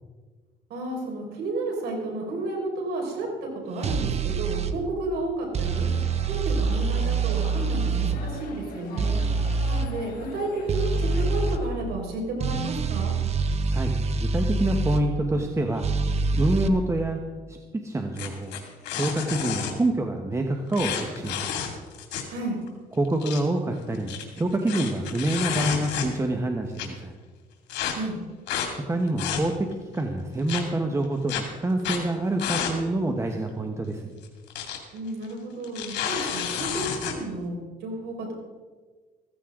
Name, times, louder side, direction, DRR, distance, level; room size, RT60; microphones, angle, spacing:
voice 1, 0.7-5.9 6.3-9.2 9.7-13.2 22.3-22.6 27.9-28.2 34.9-38.3, right 2 dB, 70° right, 0 dB, 5.1 m, -32 dB
sound 1, 3.8-4.7 5.5-8.2 9.0-9.9 10.7-11.6 12.4-15.0 15.8-16.7, right 4 dB, 40° right, 1.0 m, -25 dB
sound 2, 5.6-11.7, left 4 dB, 60° left, 3.9 m, -43 dB
voice 2, 9.0-9.6 13.7-13.9 14.2-15.9 16.3-17.2 17.5-18.5 18.9-21.5 22.9-27.2 28.8-34.1, right 1 dB, 15° right, 3 dB, 1.2 m, -27 dB
sound 3, 18.2-19.7 20.7-22.4 22.7-22.8 23.0-23.4 23.9-26.3 26.8-26.9 27.7-27.9 28.5-28.7 29.1-29.7 30.5-30.6 31.3-31.4 31.8-32.0 32.4-32.8 33.1-33.2 34.2-34.8 35.1-35.3 35.6-37.2, left 8 dB, 85° left, 2.7 m, -30 dB
15.0 x 15.0 x 3.8 m, 1.4 s
cardioid pair, 110°, 17 cm